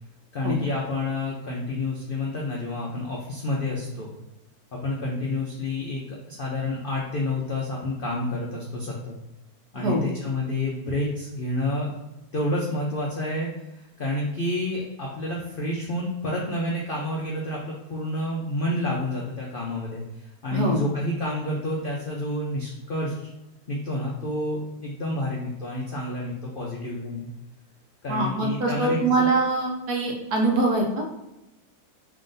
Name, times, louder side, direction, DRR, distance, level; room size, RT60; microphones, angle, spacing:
voice 1, 0.3-4.1 4.7-9.2 9.7-11.9 12.3-23.3 23.7-27.3 28.0-29.3, left 1 dB, 70° left, -3 dB, 0.5 m, -29 dB
voice 2, 28.1-31.2, right 2 dB, 80° right, 0 dB, 1.4 m, -24 dB
3.4 x 2.5 x 3.7 m, 0.96 s
omnidirectional pair, 1.7 m